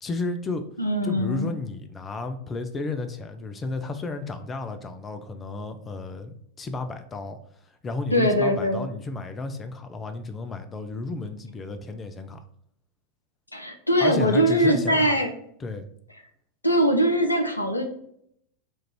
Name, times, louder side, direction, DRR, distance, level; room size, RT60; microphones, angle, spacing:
voice 1, 0.0-0.6 1.0-7.4 7.7-12.4 14.0-15.2 15.6-15.9, left 3 dB, 20° left, 8 dB, 0.4 m, -32 dB
voice 2, 0.8-1.5 8.1-8.9 13.5-15.3 16.6-17.8, equal, 85° left, 5 dB, 0.6 m, -22 dB
4.5 x 2.5 x 4.4 m, 0.69 s
figure-of-eight pair, 90°, 0 cm